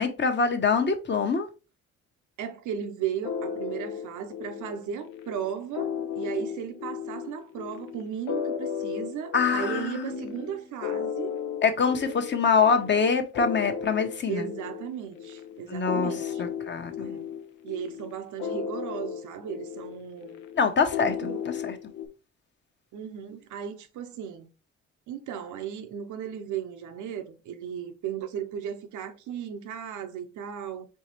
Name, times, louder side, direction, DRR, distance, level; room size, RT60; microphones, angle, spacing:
voice 1, 0.0-1.5 9.3-10.4 11.6-14.5 15.7-16.1 16.4-17.2 20.5-21.8, left 5 dB, 35° left, 0.9 m, -25 dB
voice 2, 2.4-11.3 14.3-16.4 17.0-17.3 17.6-20.4 21.0-21.4 22.9-24.5 25.1-30.9, right 8 dB, 80° right, 0.8 m, -36 dB
sound 1, 3.2-22.1, left 7 dB, 90° left, 0.6 m, -35 dB
4.6 x 3.2 x 3.0 m
cardioid pair, 90°, 30 cm